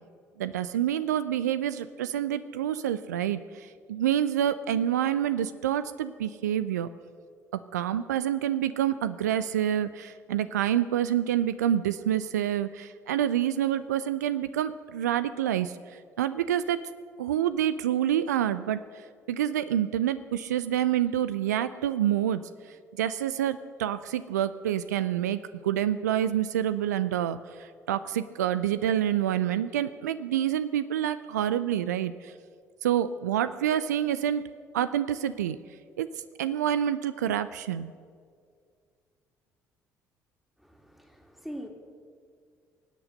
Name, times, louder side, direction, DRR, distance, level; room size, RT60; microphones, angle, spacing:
voice 1, 0.4-6.9 7.5-16.8 17.2-22.4 23.0-32.3 32.8-34.4 34.7-35.6 36.0-36.1 36.4-37.9, right 10 dB, 80° right, 13 dB, 0.4 m, -27 dB
voice 2, 40.6-41.7, equal, ahead, 3 dB, 2.5 m, -42 dB
24.0 x 8.2 x 6.5 m, 2.1 s
figure-of-eight pair, 50°, 9 cm